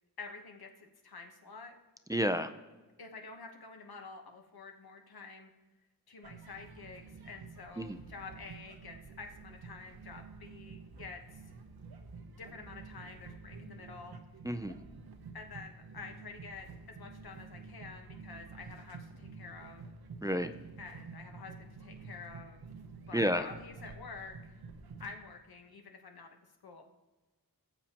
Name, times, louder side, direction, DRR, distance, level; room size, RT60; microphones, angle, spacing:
voice 1, 0.2-1.7 3.0-5.5 6.1-11.4 12.4-14.2 15.3-19.8 20.8-22.6 23.1-24.5 25.0-26.4 26.6-26.8, left 4 dB, 85° left, 3 dB, 1.2 m, -49 dB
voice 2, 2.1-2.5 7.8-8.0 14.4-14.7 20.2-20.5 23.1-23.5, equal, 10° right, 8 dB, 0.4 m, -30 dB
sound 1, 6.2-25.2, right 4 dB, 90° right, 0.9 m, -50 dB
18.5 x 7.1 x 2.9 m, 1.2 s
wide cardioid pair, 110°, 36 cm